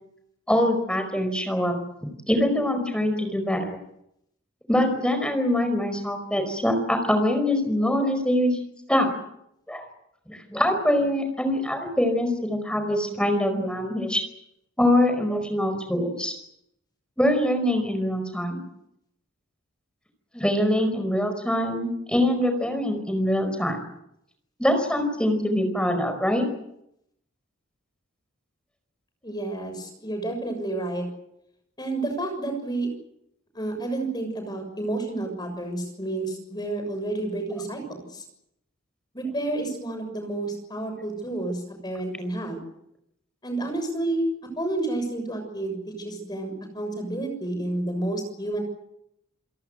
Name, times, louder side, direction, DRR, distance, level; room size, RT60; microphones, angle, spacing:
voice 1, 0.5-1.7 2.3-3.8 4.7-8.6 8.9-9.1 9.7-9.8 10.3-14.2 14.8-16.3 17.2-18.6 20.3-23.8 24.6-26.5, left 1 dB, 5° left, 6 dB, 5.0 m, -24 dB
voice 2, 29.2-31.0 31.8-32.9 33.5-38.2 39.1-42.6 43.4-44.2 44.6-48.6, right 2 dB, 20° left, 5 dB, 6.7 m, -30 dB
28.5 x 18.0 x 8.0 m, 0.79 s
head